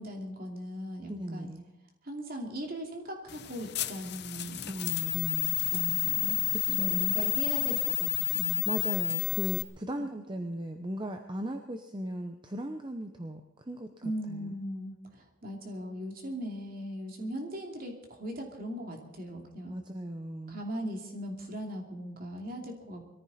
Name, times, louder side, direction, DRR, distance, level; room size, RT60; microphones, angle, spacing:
voice 1, 0.0-1.5 2.0-4.7 5.7-6.4 6.7-8.6 14.0-14.9 15.4-19.8 20.5-23.0, equal, 40° right, 1 dB, 2.8 m, -39 dB
voice 2, 1.1-1.7 4.7-5.6 6.5-7.1 8.7-13.4 13.7-13.9 14.3-14.6 19.7-20.6, right 1 dB, 20° right, 6 dB, 0.8 m, -37 dB
sound 1, 3.3-9.6, left 16 dB, 50° left, 0.7 m, -30 dB
21.5 x 14.5 x 4.3 m, 0.92 s
head